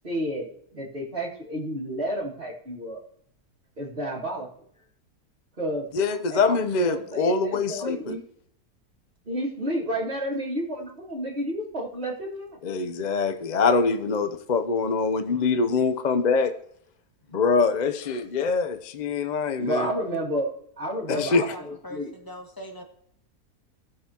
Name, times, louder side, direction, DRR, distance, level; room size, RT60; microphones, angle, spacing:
voice 1, 0.0-3.0 3.8-4.5 5.6-5.9 6.3-8.2 9.3-12.7 19.6-20.5 20.8-22.1, equal, 35° right, -9 dB, 2.4 m, -31 dB
voice 2, 5.9-8.2 12.6-16.5 17.3-19.9 21.1-21.4, left 4 dB, 40° left, 8 dB, 0.6 m, -24 dB
voice 3, 21.1-22.8, equal, 15° left, 2 dB, 1.9 m, -41 dB
19.0 x 6.8 x 2.9 m, 0.66 s
omnidirectional pair, 1.6 m